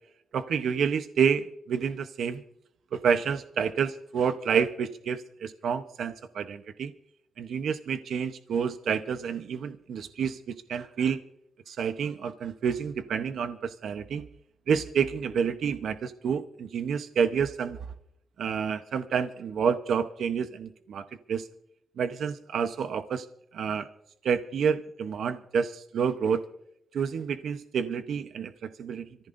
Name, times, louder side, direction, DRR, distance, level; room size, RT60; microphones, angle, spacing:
voice 1, 0.3-2.4 2.9-6.9 7.4-11.2 11.7-14.2 14.7-17.8 18.4-21.5 22.0-23.3 23.5-23.9 24.2-26.4 26.9-29.1, right 7 dB, 75° right, 9 dB, 0.8 m, -29 dB
27.0 x 14.5 x 2.6 m, 0.78 s
cardioid pair, 85°, 0 cm